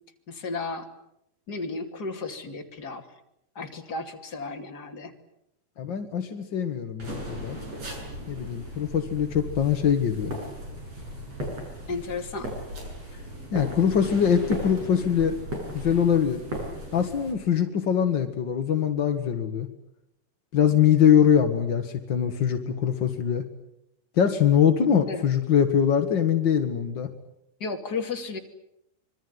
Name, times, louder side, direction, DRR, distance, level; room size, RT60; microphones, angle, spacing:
voice 1, 0.3-0.9 1.5-3.1 3.5-5.1 11.9-12.5 25.1-25.3 27.6-28.4, left 4 dB, 30° left, 3 dB, 2.6 m, -33 dB
voice 2, 5.8-7.6 8.3-10.3 13.5-15.4 15.7-16.4 16.9-19.7 20.5-23.4 24.1-27.1, left 8 dB, 55° left, 6 dB, 1.3 m, -23 dB
sound 1, 7.0-17.3, equal, 40° right, 7.9 m, -37 dB
25.5 x 23.5 x 9.5 m, 0.80 s
omnidirectional pair, 4.5 m